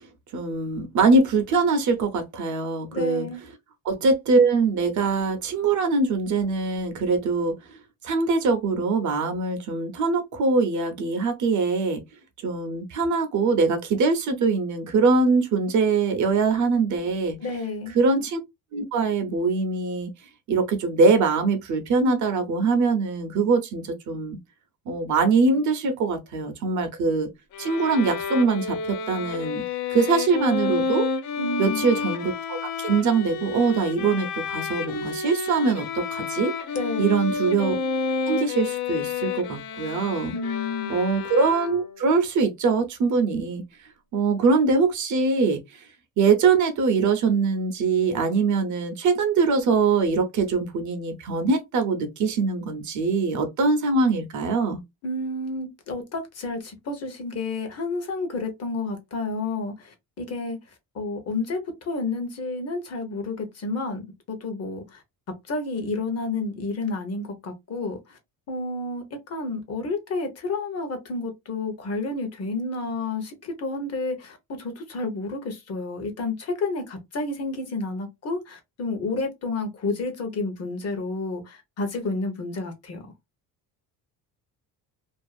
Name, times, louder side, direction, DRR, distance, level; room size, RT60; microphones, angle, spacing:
voice 1, 0.3-3.3 3.8-7.6 8.0-12.0 12.4-17.4 17.9-18.4 18.7-20.1 20.5-24.4 24.9-27.3 27.6-29.6 29.9-31.1 31.6-36.5 37.0-37.8 38.3-40.3 40.9-43.6 44.1-45.6 46.2-54.8, right 4 dB, 50° right, 0.7 m, -23 dB
voice 2, 2.9-3.4 17.4-18.0 31.4-31.8 36.7-37.2 40.3-41.0 55.0-60.6 60.9-65.0 65.5-68.2 68.5-83.0, left 3 dB, 40° left, 0.8 m, -30 dB
Bowed string instrument, 27.5-42.1, left 5 dB, 75° left, 0.7 m, -30 dB
2.6 x 2.4 x 2.3 m
cardioid pair, 145°, 39 cm